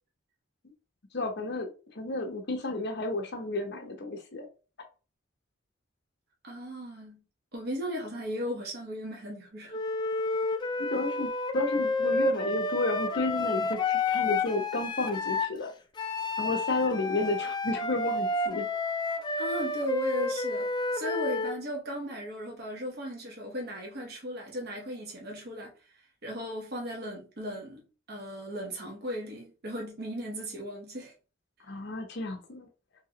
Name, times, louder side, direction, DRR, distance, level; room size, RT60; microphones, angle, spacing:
voice 1, 1.1-1.7 1.9-4.5 10.8-15.7 16.4-18.7 31.7-32.7, left 2 dB, 55° left, 0.9 m, -32 dB
voice 2, 6.4-7.2 7.5-9.8 19.4-27.8 28.1-31.1, equal, 50° right, 1.0 m, -36 dB
Wind instrument woodwind instrument, 9.7-15.6 16.0-21.6, left 3 dB, 20° left, 0.4 m, -30 dB
3.8 x 2.8 x 2.9 m
head